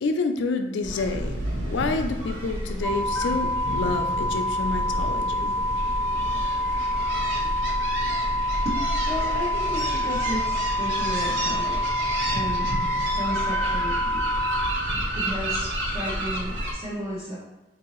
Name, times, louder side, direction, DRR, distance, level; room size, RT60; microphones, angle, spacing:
voice 1, 0.0-5.6, left 3 dB, 85° left, 6 dB, 0.4 m, -28 dB
sound 1, 0.8-16.7, right 1 dB, 85° right, 0.8 m, -30 dB
sound 2, 2.8-14.7, left 1 dB, 5° left, 0.3 m, -27 dB
voice 2, 8.6-12.0 12.3-12.7 13.1-14.4 15.1-17.4, equal, 40° right, -9 dB, 0.9 m, -33 dB
3.9 x 2.6 x 3.0 m, 1.1 s
head